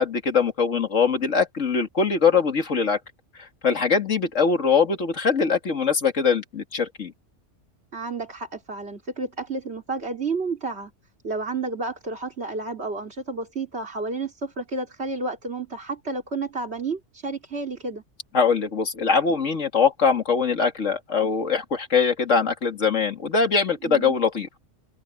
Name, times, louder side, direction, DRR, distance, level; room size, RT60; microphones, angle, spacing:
voice 1, 0.0-3.0 3.4-7.1 18.3-24.5, left 5 dB, 85° left, 2.5 m, -22 dB
voice 2, 7.9-10.9 11.2-18.0 23.8-24.2, right 3 dB, 60° right, 3.4 m, -31 dB
open air
omnidirectional pair, 1.3 m